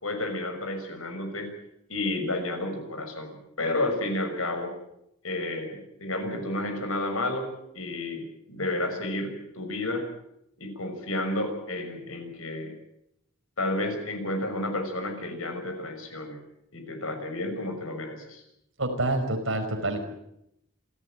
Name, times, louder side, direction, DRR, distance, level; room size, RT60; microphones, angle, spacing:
voice 1, 0.0-1.5 1.9-4.7 5.2-7.5 7.7-10.1 10.6-12.7 13.6-16.4 16.7-18.4, left 2 dB, 90° left, 5 dB, 6.3 m, -31 dB
voice 2, 18.8-20.0, right 2 dB, 70° right, 4 dB, 5.1 m, -27 dB
27.5 x 14.5 x 9.1 m, 0.80 s
head